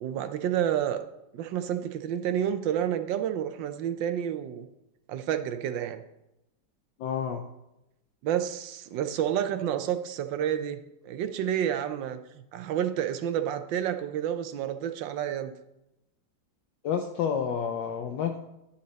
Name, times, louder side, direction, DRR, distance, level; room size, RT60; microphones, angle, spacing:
voice 1, 0.0-1.0 1.3-4.7 5.1-6.0 8.2-15.5, right 10 dB, 80° right, 9 dB, 1.3 m, -30 dB
voice 2, 7.0-7.4 16.8-18.4, left 7 dB, 75° left, 4 dB, 1.3 m, -29 dB
11.5 x 5.6 x 3.9 m, 0.90 s
omnidirectional pair, 2.1 m